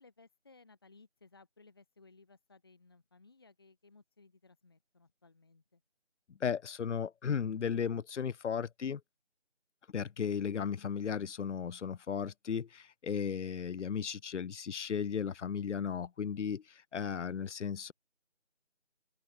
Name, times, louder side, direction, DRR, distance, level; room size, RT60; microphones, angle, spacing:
voice 1, 0.0-5.8, left 3 dB, 20° left, 2.2 m, -61 dB
voice 2, 6.4-9.0 9.9-16.6 16.9-17.9, left 7 dB, 80° left, 0.6 m, -35 dB
open air
figure-of-eight pair, 175°, 35 cm